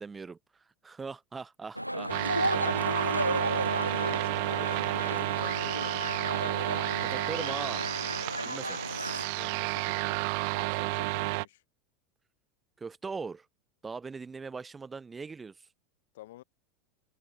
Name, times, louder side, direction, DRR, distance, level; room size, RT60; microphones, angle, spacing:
voice 1, 0.0-2.1 7.0-7.9 8.4-8.8 12.8-13.5 13.8-15.7, right 4 dB, 15° right, 0.6 m, -40 dB
sound 1, 1.8-9.3, equal, 90° right, 0.5 m, -33 dB
sound 2, 2.1-11.4, right 33 dB, 50° right, 0.8 m, -31 dB
voice 2, 2.6-3.2 3.6-6.1 9.3-10.3 10.5-11.6 16.1-16.4, left 15 dB, 60° left, 6.0 m, -49 dB
figure-of-eight pair, 80°, 0 cm